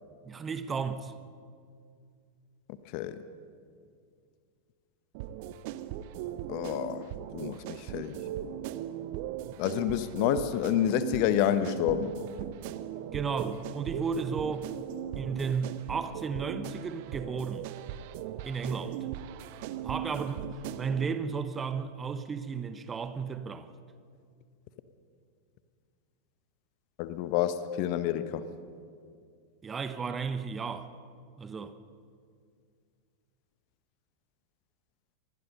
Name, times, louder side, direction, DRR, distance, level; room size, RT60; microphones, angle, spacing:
voice 1, 0.2-1.1 13.1-14.7 15.1-17.7 18.4-19.1 19.8-20.5 20.8-23.7 29.6-30.9 31.4-31.7, right 5 dB, 20° right, 1.1 m, -33 dB
sound 1, 5.1-21.1, right 11 dB, 50° right, 1.0 m, -39 dB
voice 2, 6.5-8.2 9.6-12.2 27.0-28.4, left 11 dB, 45° left, 1.2 m, -29 dB
26.5 x 20.5 x 5.5 m
figure-of-eight pair, 90°, 0 cm